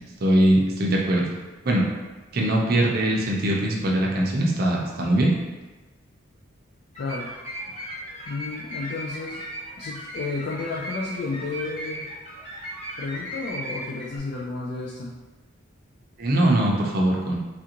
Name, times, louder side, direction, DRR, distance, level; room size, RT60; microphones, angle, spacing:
voice 1, 0.2-1.2 1.6-1.8 2.3-5.3 16.2-17.4, right 1 dB, 45° right, -2 dB, 0.5 m, -21 dB
sound 1, 6.9-14.2, right 1 dB, 30° left, 1.1 m, -37 dB
voice 2, 7.0-7.3 8.3-9.4 9.8-12.1 13.0-15.1, left 3 dB, 50° left, -3 dB, 0.3 m, -32 dB
3.4 x 2.5 x 2.9 m, 1.2 s
head